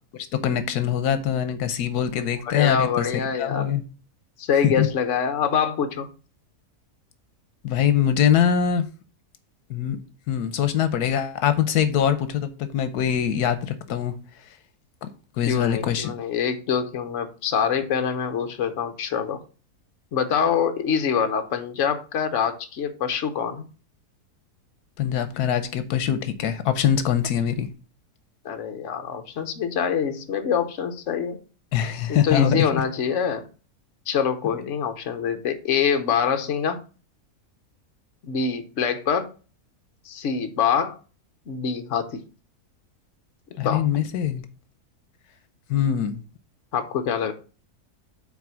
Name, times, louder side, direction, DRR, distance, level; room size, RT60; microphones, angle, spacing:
voice 1, 0.3-3.8 4.6-4.9 7.6-8.9 9.7-10.0 10.3-14.2 15.0-15.1 15.3-16.1 25.0-27.7 31.7-32.8 43.6-44.4 45.7-46.2, left 9 dB, 80° left, 1.3 m, -23 dB
voice 2, 2.4-3.7 4.4-6.1 15.5-19.4 20.1-23.7 28.4-31.4 32.1-33.5 34.1-36.8 38.2-39.3 40.0-41.0 41.5-42.2 43.6-43.8 46.7-47.3, left 7 dB, 55° left, 1.2 m, -25 dB
6.0 x 4.3 x 6.0 m
omnidirectional pair, 1.6 m